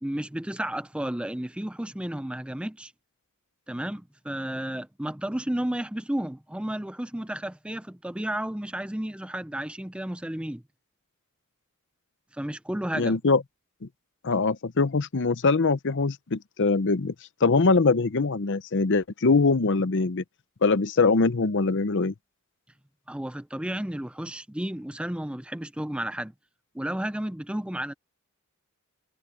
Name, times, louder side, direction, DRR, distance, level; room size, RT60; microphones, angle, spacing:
voice 1, 0.0-2.9 3.7-10.6 12.3-13.2 23.1-26.3 26.7-27.9, right 1 dB, 5° right, 0.5 m, -32 dB
voice 2, 12.9-13.4 14.2-17.1 17.4-20.2 20.6-22.1, left 4 dB, 55° left, 0.7 m, -23 dB
head